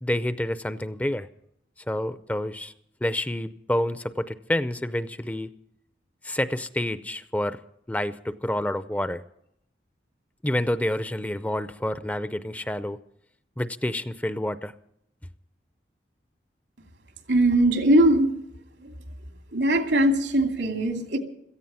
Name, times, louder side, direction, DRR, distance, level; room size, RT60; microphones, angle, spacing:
voice 1, 0.0-1.3 1.9-2.7 3.0-5.5 6.2-7.6 7.9-9.2 10.4-13.0 13.6-14.7, left 1 dB, 10° left, 13 dB, 0.5 m, -28 dB
voice 2, 17.3-18.3 18.8-18.9 19.5-21.2, right 1 dB, 90° right, 4 dB, 2.6 m, -20 dB
17.0 x 14.5 x 5.6 m, 0.74 s
head